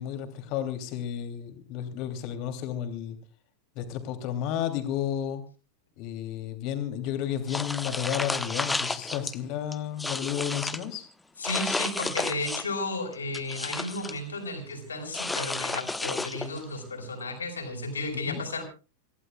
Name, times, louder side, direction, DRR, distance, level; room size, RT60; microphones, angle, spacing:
voice 1, 0.0-3.2 3.7-5.4 6.0-11.1 18.3-18.4, left 10 dB, 40° left, 8 dB, 3.0 m, -32 dB
sound 1, 7.5-9.3 9.7-10.9 11.4-12.8 13.1-14.2 15.1-16.6, left 3 dB, 10° left, 1.0 m, -32 dB
voice 2, 11.4-18.6, left 2 dB, 75° left, 4 dB, 5.0 m, -33 dB
27.5 x 16.0 x 2.4 m, 0.33 s
figure-of-eight pair, 90°, 0 cm